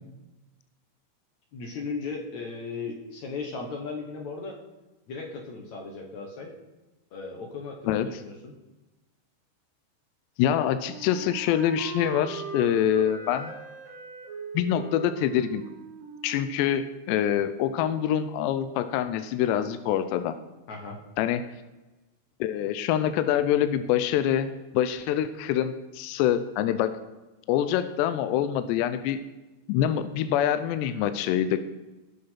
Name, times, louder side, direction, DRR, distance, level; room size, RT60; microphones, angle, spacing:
voice 1, 1.5-4.6 5.1-6.5 7.1-8.5 20.7-21.0, left 4 dB, 65° left, 1 dB, 1.8 m, -36 dB
voice 2, 7.9-8.2 10.4-13.5 14.5-15.6 16.2-20.4 21.2-21.5 22.4-24.5 24.7-26.9 27.5-29.2 29.7-31.6, left 10 dB, 80° left, 11 dB, 2.6 m, -25 dB
Wind instrument woodwind instrument, 10.4-17.3, right 6 dB, 45° right, 3.6 m, -40 dB
18.5 x 6.7 x 5.8 m, 1.1 s
omnidirectional pair, 5.4 m